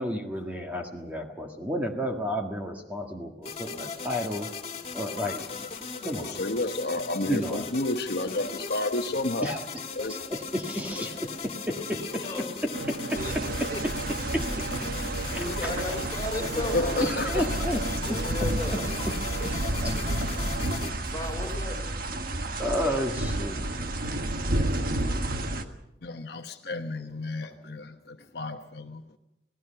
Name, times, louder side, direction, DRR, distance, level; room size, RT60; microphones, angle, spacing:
voice 1, 0.0-4.5 4.9-5.4 6.0-6.4 7.3-7.7 9.4-9.6 10.1-11.1 11.4-12.2 12.9-13.9 14.3-14.5 14.8-14.9 15.3-16.0 17.0-18.5 19.4-19.9 22.6-23.6, equal, 10° right, 1.7 m, -32 dB
sound 1, 3.4-20.9, left 5 dB, 35° left, 2.7 m, -38 dB
voice 2, 6.0-9.5 10.0-10.2 11.0-11.1 16.6-17.5 26.0-29.0, left 2 dB, 60° left, 1.1 m, -31 dB
voice 3, 10.9-11.5 11.8-12.5 13.1-13.4 13.7-13.8 14.5-17.1 18.0-19.1 19.4-19.5 20.7-22.0 24.8-25.7, left 2 dB, 20° left, 3.5 m, -37 dB
sound 2, 12.7-20.8, right 3 dB, 70° right, 1.8 m, -36 dB
sound 3, 13.1-25.6, right 1 dB, 55° right, 1.4 m, -31 dB
28.0 x 18.5 x 5.7 m
head